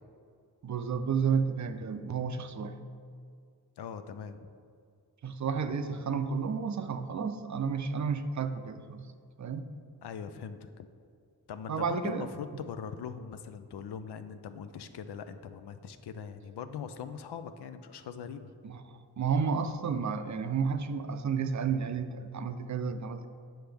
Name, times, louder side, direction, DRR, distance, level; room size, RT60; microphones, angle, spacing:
voice 1, 0.6-2.8 5.2-9.1 9.4-9.7 11.7-12.3 18.6-23.3, right 6 dB, 45° right, 9 dB, 0.5 m, -31 dB
voice 2, 3.8-4.5 10.0-10.9 11.5-18.5, left 7 dB, 85° left, 10 dB, 0.5 m, -41 dB
7.8 x 5.8 x 3.4 m, 2.3 s
cardioid pair, 60°, 39 cm